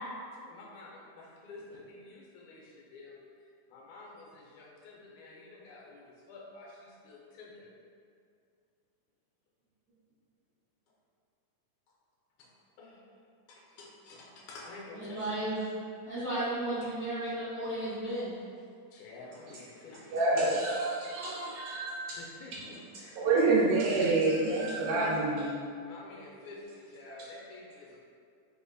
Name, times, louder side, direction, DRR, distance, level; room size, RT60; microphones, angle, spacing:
voice 1, 0.4-7.7 12.4-12.5 12.8-13.2 13.5-15.3 16.8-16.9 18.9-20.4 22.2-24.2 25.8-28.0, left 3 dB, 80° left, -4 dB, 1.9 m, -49 dB
voice 2, 14.9-15.6 16.0-18.3 24.9-25.1, right 1 dB, 70° right, -17 dB, 1.0 m, -34 dB
voice 3, 20.1-22.2 23.1-25.5, right 3 dB, 90° right, -6 dB, 2.1 m, -27 dB
4.9 x 2.1 x 2.5 m, 2.3 s
omnidirectional pair, 3.5 m